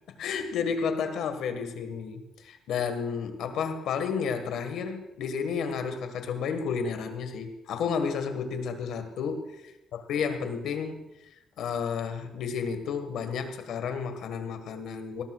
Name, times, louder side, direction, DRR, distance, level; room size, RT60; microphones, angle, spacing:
voice 1, 0.2-9.6 9.9-11.1 11.6-15.2, left 6 dB, 80° left, 7 dB, 1.6 m, -31 dB
19.0 x 17.5 x 2.4 m, 0.94 s
cardioid pair, 90°, 0 cm